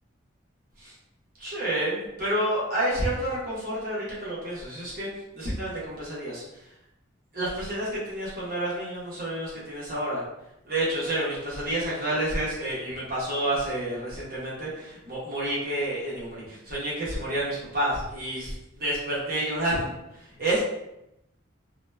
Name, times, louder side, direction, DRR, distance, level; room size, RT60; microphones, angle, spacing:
voice 1, 1.4-5.1 5.3-6.4 7.3-10.2 10.6-20.6, right 1 dB, 45° right, -7 dB, 1.1 m, -29 dB
2.9 x 2.2 x 3.3 m, 0.85 s
head